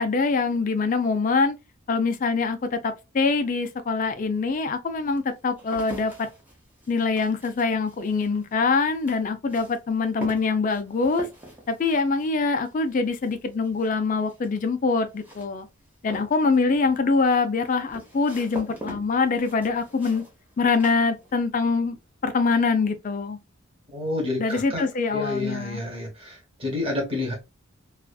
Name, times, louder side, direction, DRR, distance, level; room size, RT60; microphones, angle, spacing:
voice 1, 0.0-1.6 1.9-6.3 6.9-11.3 11.7-15.7 16.0-20.3 20.6-22.0 22.2-23.4 24.4-25.8, left 4 dB, 40° left, 0.3 m, -24 dB
sound 1, 3.7-3.8 4.5-21.7 22.0-22.6, right 1 dB, 10° right, 0.7 m, -44 dB
voice 2, 23.9-24.9 25.1-27.3, left 2 dB, 25° right, 1.0 m, -29 dB
2.5 x 2.4 x 2.3 m
head